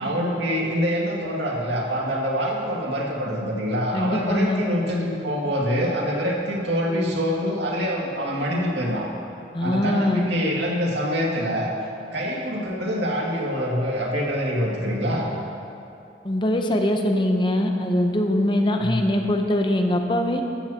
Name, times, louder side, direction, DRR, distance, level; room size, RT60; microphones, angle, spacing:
voice 1, 0.0-9.0 9.6-11.7 12.1-15.3 18.8-19.1, equal, 85° right, -3 dB, 2.2 m, -25 dB
voice 2, 3.9-4.6 9.5-10.3 16.2-20.4, left 1 dB, 25° left, 4 dB, 0.7 m, -22 dB
14.0 x 14.0 x 2.9 m, 2.7 s
head